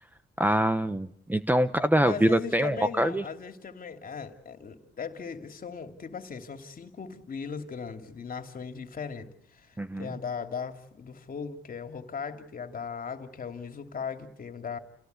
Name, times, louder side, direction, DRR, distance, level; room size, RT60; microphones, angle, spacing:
voice 1, 0.4-3.2 9.8-10.1, right 1 dB, 10° right, 12 dB, 0.9 m, -24 dB
voice 2, 2.0-14.8, left 6 dB, 45° left, 6 dB, 2.8 m, -38 dB
29.5 x 17.5 x 8.2 m, 0.68 s
cardioid pair, 90°, 20 cm